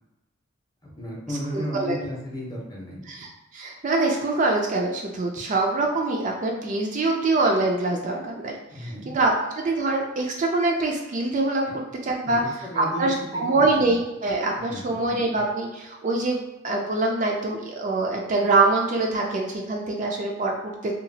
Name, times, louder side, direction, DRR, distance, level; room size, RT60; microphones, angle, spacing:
voice 1, 0.8-3.1 8.7-9.1 11.6-11.7 12.3-13.9 14.6-15.0, equal, 20° left, -3 dB, 0.7 m, -34 dB
voice 2, 1.5-2.0 3.1-3.3 3.5-12.4 12.8-20.9, right 2 dB, 40° right, 1 dB, 0.4 m, -24 dB
2.8 x 2.4 x 2.7 m, 0.99 s
head